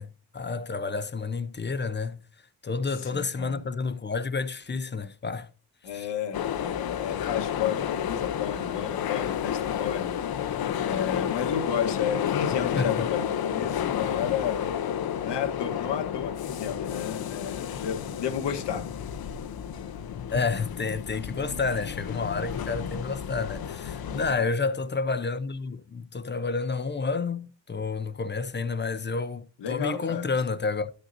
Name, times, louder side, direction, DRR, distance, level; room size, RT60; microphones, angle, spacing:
voice 1, 0.0-2.2 2.6-5.5 5.9-6.1 12.8-13.1 20.3-30.9, left 4 dB, 25° left, 0.7 m, -30 dB
voice 2, 3.0-3.6 5.8-14.7 15.2-18.9 23.9-24.5 29.6-30.4, left 8 dB, 75° left, 1.4 m, -33 dB
sound 1, 6.3-24.3, left 9 dB, 60° left, 0.8 m, -31 dB
11.5 x 6.5 x 2.7 m
cardioid pair, 85°, 42 cm